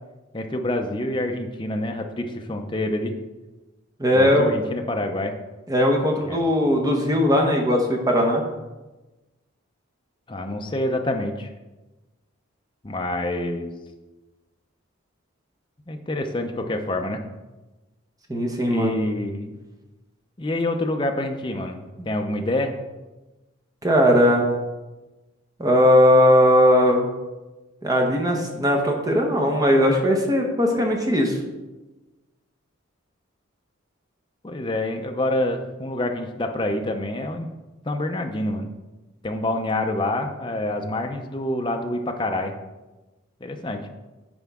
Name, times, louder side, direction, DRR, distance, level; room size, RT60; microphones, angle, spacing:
voice 1, 0.3-3.1 4.1-5.3 6.2-6.5 10.3-11.5 12.8-13.7 15.9-17.2 18.6-19.6 20.4-22.8 34.4-37.5 37.8-38.7 39.2-42.5 43.4-43.8, left 1 dB, 25° left, 4 dB, 0.5 m, -27 dB
voice 2, 4.0-4.5 5.7-8.4 18.3-18.9 23.8-24.5 25.6-27.1 27.8-31.4, equal, 15° right, 1 dB, 0.9 m, -18 dB
9.8 x 4.5 x 3.6 m, 1.1 s
head